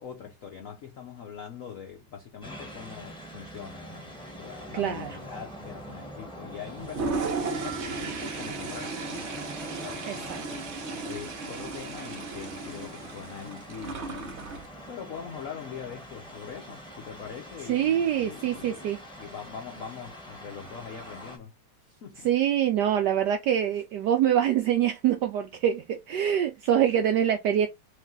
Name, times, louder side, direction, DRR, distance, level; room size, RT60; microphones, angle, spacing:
voice 1, 0.0-9.4 9.8-18.9 19.2-21.5 21.9-22.3, left 7 dB, 75° left, 0.7 m, -43 dB
sound 1, 2.4-21.4, right 1 dB, 5° left, 1.0 m, -44 dB
voice 2, 4.7-5.1 10.1-10.4 17.7-19.0 22.2-27.7, right 10 dB, 80° right, 0.9 m, -25 dB
Toilet flush, 6.8-14.7, right 4 dB, 55° right, 0.7 m, -35 dB
3.3 x 3.2 x 3.6 m
omnidirectional pair, 2.3 m